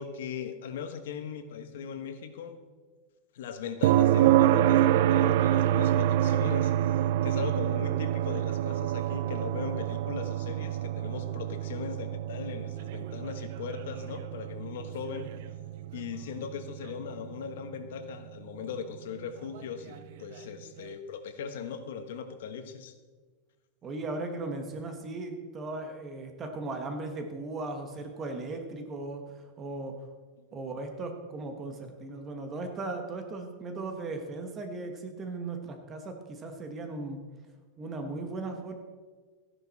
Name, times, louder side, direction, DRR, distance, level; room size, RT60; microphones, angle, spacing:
voice 1, 0.0-2.6 3.3-6.9 7.2-15.3 15.9-22.9 30.4-30.6, left 7 dB, 75° left, 8 dB, 1.3 m, -39 dB
sound 1, 3.8-17.7 19.9-20.0, right 12 dB, 55° right, 0.4 m, -27 dB
voice 2, 23.8-29.9 30.5-37.2 37.8-38.7, right 2 dB, 20° right, 5 dB, 1.2 m, -37 dB
14.5 x 10.5 x 4.1 m, 1.4 s
supercardioid pair, 175°, 0 cm